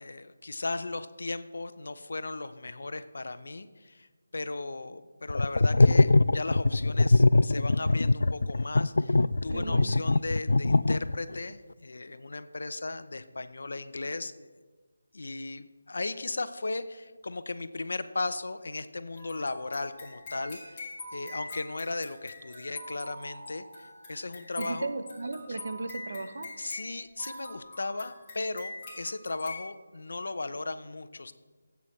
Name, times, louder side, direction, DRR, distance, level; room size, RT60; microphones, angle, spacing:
voice 1, 0.0-4.1 4.3-14.5 15.1-20.8 21.1-24.9 25.5-25.6 26.6-31.3, left 3 dB, 70° left, 12 dB, 0.7 m, -36 dB
sound 1, 5.3-11.4, left 2 dB, 85° left, 0.3 m, -22 dB
voice 2, 9.5-10.0 24.6-26.5, right 3 dB, 55° right, 8 dB, 1.0 m, -36 dB
sound 2, 19.2-29.7, left 2 dB, 15° left, 2.4 m, -44 dB
21.0 x 8.3 x 3.3 m, 1.3 s
figure-of-eight pair, 175°, 0 cm